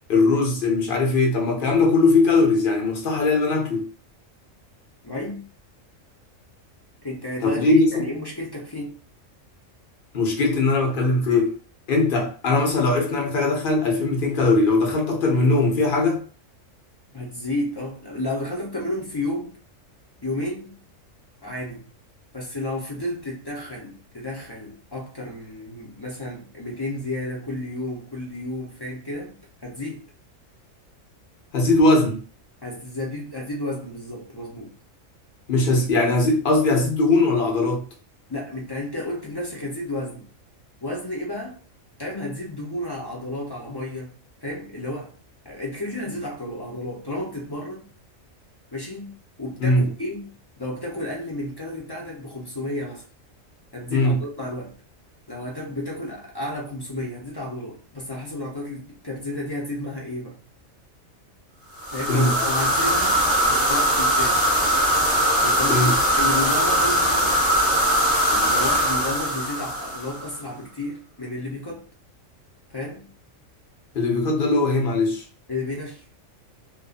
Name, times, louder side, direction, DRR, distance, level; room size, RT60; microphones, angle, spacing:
voice 1, 0.1-3.9 7.4-8.0 10.1-11.5 11.9-16.2 31.5-32.2 35.5-37.8 49.6-49.9 53.9-54.2 62.1-62.3 65.7-66.0 73.9-75.2, left 2 dB, 50° left, 0.8 m, -20 dB
voice 2, 5.0-5.5 7.0-9.0 17.1-19.5 20.2-20.8 21.4-21.9 22.3-30.1 32.6-34.7 38.3-40.2 40.8-41.6 42.0-44.1 44.4-45.1 45.4-47.9 48.7-53.0 53.7-54.7 55.3-60.4 61.9-64.4 65.4-67.4 68.3-71.8 72.7-73.1 75.5-76.0, left 1 dB, 30° left, 0.4 m, -32 dB
sound 1, 61.8-70.3, equal, 10° left, 1.1 m, -21 dB
2.5 x 2.3 x 2.4 m
omnidirectional pair, 1.4 m